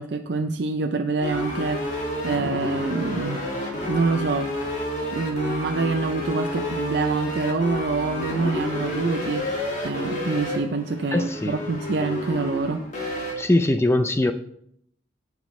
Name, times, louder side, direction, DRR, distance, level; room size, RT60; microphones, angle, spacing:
voice 1, 0.0-3.4 3.9-4.6 5.1-9.5 9.8-12.8, right 3 dB, 60° right, 6 dB, 0.5 m, -26 dB
sound 1, 1.2-13.3, left 1 dB, 40° left, 2.1 m, -30 dB
voice 2, 11.1-11.6 13.4-14.3, left 1 dB, 15° left, 7 dB, 0.4 m, -21 dB
17.0 x 6.0 x 3.2 m, 0.71 s
head